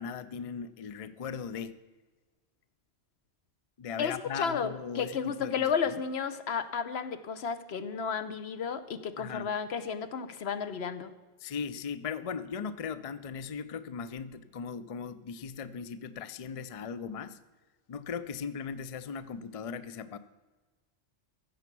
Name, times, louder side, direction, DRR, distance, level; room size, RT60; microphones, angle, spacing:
voice 1, 0.0-1.7 3.8-6.0 9.2-9.5 11.4-17.4 17.9-20.2, left 6 dB, 45° left, 14 dB, 0.5 m, -38 dB
voice 2, 4.0-11.1, left 6 dB, 70° left, 11 dB, 1.0 m, -32 dB
15.5 x 6.9 x 6.0 m, 1.3 s
omnidirectional pair, 1.2 m